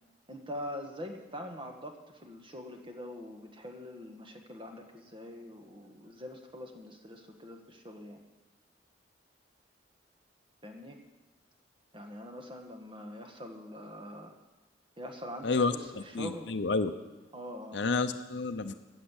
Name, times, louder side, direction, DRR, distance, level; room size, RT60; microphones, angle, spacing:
voice 1, 0.3-8.2 10.6-11.0 11.9-14.3 15.0-16.5 17.3-17.9, equal, 25° right, 3 dB, 1.4 m, -44 dB
voice 2, 15.4-16.9 17.7-18.7, left 3 dB, 65° left, 7 dB, 0.6 m, -30 dB
14.5 x 6.5 x 8.2 m, 1.1 s
head